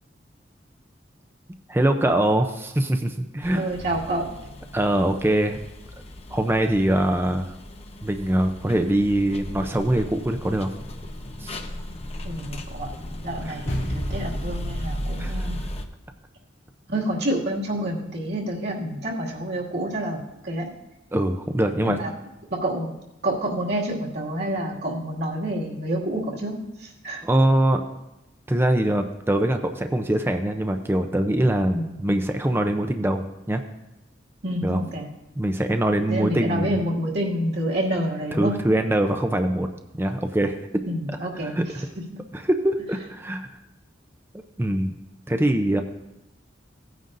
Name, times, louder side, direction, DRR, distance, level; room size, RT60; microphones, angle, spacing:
voice 1, 1.7-3.6 4.7-5.6 6.3-7.5 8.0-10.7 11.4-11.6 13.5-13.6 15.2-15.5 21.1-22.0 27.2-27.8 28.5-33.6 34.6-34.8 35.4-36.8 38.4-39.7 39.9-40.8 41.4-41.6 42.3-43.5 44.6-44.9 45.3-45.8, right 1 dB, 10° right, 5 dB, 0.5 m, -23 dB
sound 1, 3.4-15.8, equal, 35° left, 0.7 m, -37 dB
voice 2, 3.5-4.3 12.2-12.9 13.2-15.7 16.9-20.7 21.8-22.1 22.5-22.9 23.2-27.2 31.7-31.9 34.4-35.1 36.1-38.5 40.9-41.8, right 1 dB, 60° right, -3 dB, 2.2 m, -28 dB
sound 2, 9.3-15.7, equal, 75° left, 2.2 m, -34 dB
17.0 x 9.2 x 2.6 m, 0.94 s
head